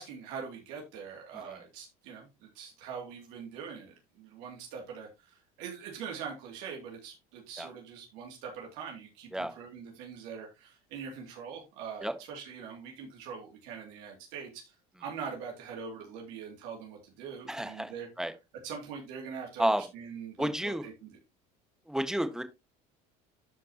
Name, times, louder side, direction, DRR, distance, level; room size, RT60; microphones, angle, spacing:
voice 1, 0.0-18.1 18.6-21.2, right 6 dB, 75° right, 0 dB, 2.5 m, -43 dB
voice 2, 17.5-17.9 18.2-18.3 19.6-19.8 20.4-20.8 21.9-22.4, right 1 dB, 5° right, 9 dB, 1.4 m, -30 dB
12.0 x 5.2 x 2.9 m, 0.24 s
supercardioid pair, 105°, 18 cm